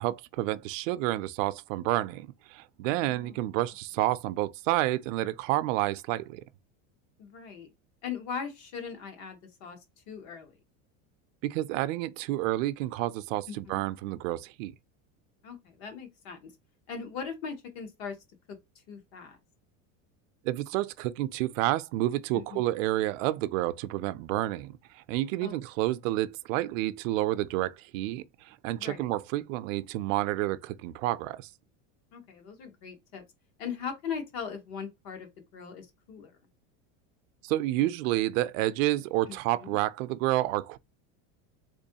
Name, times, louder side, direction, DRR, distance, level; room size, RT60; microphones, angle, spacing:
voice 1, 0.0-6.4 11.4-14.7 20.4-31.5 37.4-40.8, right 16 dB, 70° right, 0.5 m, -29 dB
voice 2, 2.9-3.4 7.2-7.7 8.0-9.8 10.1-10.6 13.5-13.6 15.4-16.5 16.9-18.2 18.5-18.6 18.9-19.4 22.3-22.6 25.4-25.5 28.8-29.1 32.1-33.2 33.6-36.3 39.3-39.8, left 6 dB, 55° left, 1.3 m, -39 dB
3.7 x 3.1 x 2.7 m
cardioid pair, 175°, 40 cm